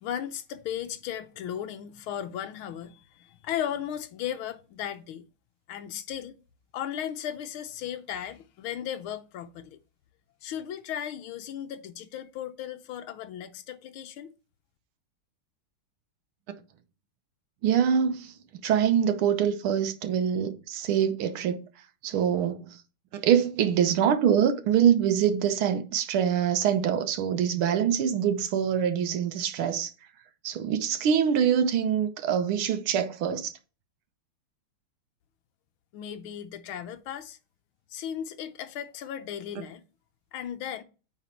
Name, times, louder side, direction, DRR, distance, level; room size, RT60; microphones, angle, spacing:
voice 1, 0.0-5.2 5.7-6.4 6.7-9.8 10.4-14.3 35.9-37.4 37.9-39.8 40.3-40.8, left 10 dB, 75° left, 1.5 m, -36 dB
voice 2, 17.6-18.3 18.6-21.6 22.0-22.8 23.1-29.9 30.4-33.5, right 8 dB, 75° right, 1.7 m, -24 dB
9.1 x 3.9 x 4.5 m
omnidirectional pair, 2.4 m